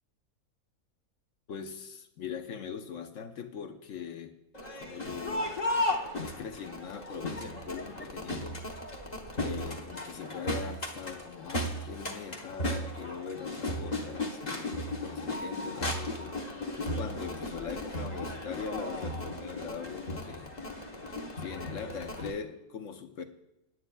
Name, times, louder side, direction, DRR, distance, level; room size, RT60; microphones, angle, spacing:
voice 1, 1.5-4.4 4.7-5.5 6.2-8.6 9.4-16.4 16.8-20.5 21.4-23.2, left 6 dB, 65° left, 7 dB, 1.1 m, -41 dB
Crowd, 4.5-22.3, left 1 dB, 35° left, 1.1 m, -35 dB
17.5 x 9.8 x 2.3 m, 0.89 s
omnidirectional pair, 1.5 m